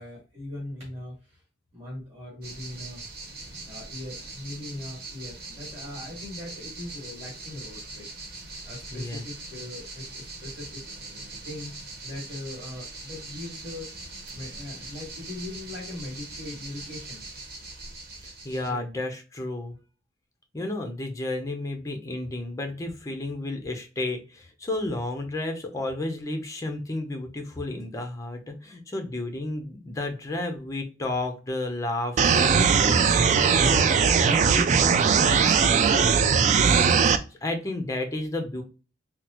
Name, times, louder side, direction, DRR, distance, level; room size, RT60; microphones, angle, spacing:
voice 1, 0.0-1.4 1.7-3.0 3.6-8.0 8.6-10.8 11.4-11.7 12.0-13.9 14.3-17.2 18.6-18.8, left 1 dB, 20° right, -4 dB, 1.5 m, -40 dB
sound 1, 2.4-18.7, right 3 dB, 60° right, 1.0 m, -41 dB
voice 2, 8.9-9.2 18.2-19.7 20.5-38.6, left 2 dB, 20° left, 4 dB, 0.7 m, -32 dB
sound 2, 32.2-37.2, right 6 dB, 40° right, 0.3 m, -20 dB
3.9 x 2.0 x 2.9 m, 0.33 s
head